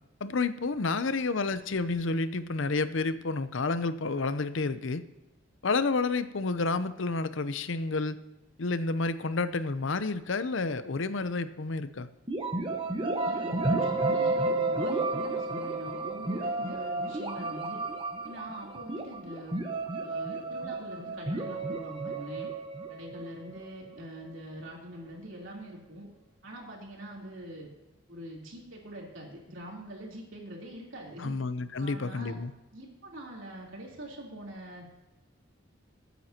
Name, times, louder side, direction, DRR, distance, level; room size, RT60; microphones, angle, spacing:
voice 1, 0.2-5.0 5.6-8.2 8.6-12.1 31.2-32.5, left 3 dB, 65° left, 12 dB, 0.7 m, -30 dB
sound 1, 12.3-24.0, right 2 dB, 25° right, 1.2 m, -32 dB
voice 2, 13.1-17.8 18.2-19.6 20.0-22.5 22.9-26.1 26.4-27.7 28.1-31.3 31.8-32.4 32.7-34.9, right 1 dB, 70° right, -2 dB, 3.6 m, -44 dB
21.0 x 9.2 x 2.9 m, 1.0 s
head